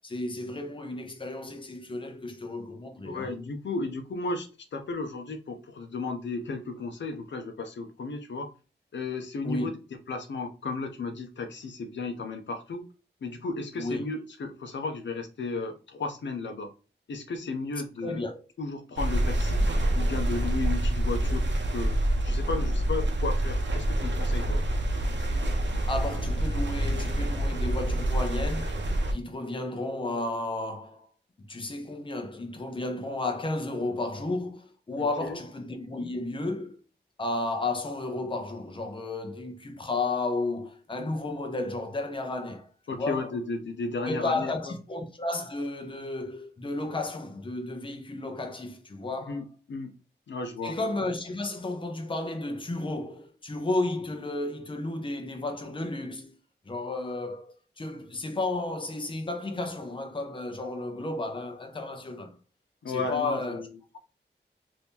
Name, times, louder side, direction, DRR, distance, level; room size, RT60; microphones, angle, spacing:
voice 1, 0.0-3.3 9.4-9.7 13.8-14.0 18.0-18.4 25.9-31.1 31.5-36.8 37.2-42.7 43.0-43.3 44.0-49.4 50.6-56.3 56.7-62.4 62.9-63.6, left 2 dB, 25° left, 0.6 m, -33 dB
voice 2, 3.0-8.5 8.9-9.7 10.1-12.8 13.2-16.7 17.1-18.2 18.6-19.7 20.0-21.4 21.7-21.9 22.2-24.6 35.0-35.4 42.9-44.7 49.3-49.9 50.3-50.7 62.8-63.7, left 3 dB, 85° left, 0.6 m, -34 dB
sound 1, 19.0-29.1, right 1 dB, 85° right, 0.8 m, -27 dB
2.9 x 2.6 x 3.5 m
wide cardioid pair, 115°, 18 cm